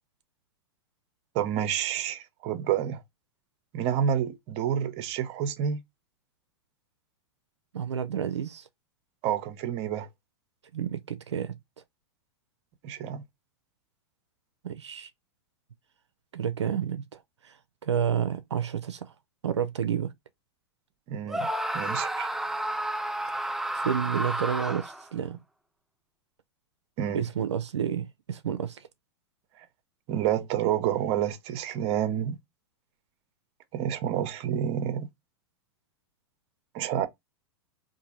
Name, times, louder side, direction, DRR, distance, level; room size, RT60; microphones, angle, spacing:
voice 1, 1.3-3.0 3.7-5.8 9.2-10.1 12.8-13.2 21.1-22.3 27.0-27.2 29.6-29.7 30.1-32.4 33.7-35.1 36.7-37.1, right 9 dB, 45° right, 0.7 m, -29 dB
voice 2, 7.7-8.7 10.7-11.6 14.6-15.1 16.3-19.1 19.4-20.1 23.7-25.4 27.1-28.9, right 8 dB, 85° right, 0.4 m, -30 dB
Screaming, 21.3-25.1, right 1 dB, ahead, 0.3 m, -31 dB
3.8 x 2.6 x 2.8 m
hypercardioid pair, 100°, 14 cm